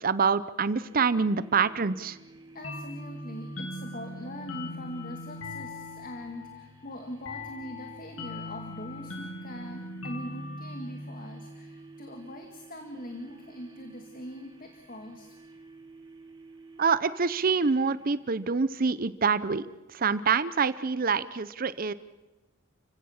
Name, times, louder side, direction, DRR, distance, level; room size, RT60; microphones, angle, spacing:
voice 1, 0.0-2.2 16.8-19.7 19.9-21.9, right 5 dB, 45° right, 15 dB, 0.7 m, -26 dB
sound 1, 0.8-19.1, right 3 dB, 25° right, 2.2 m, -52 dB
voice 2, 2.5-15.3, equal, 45° left, 4 dB, 2.0 m, -42 dB
sound 2, 2.6-12.0, left 2 dB, 85° left, 3.0 m, -40 dB
30.0 x 16.5 x 7.3 m, 1.1 s
head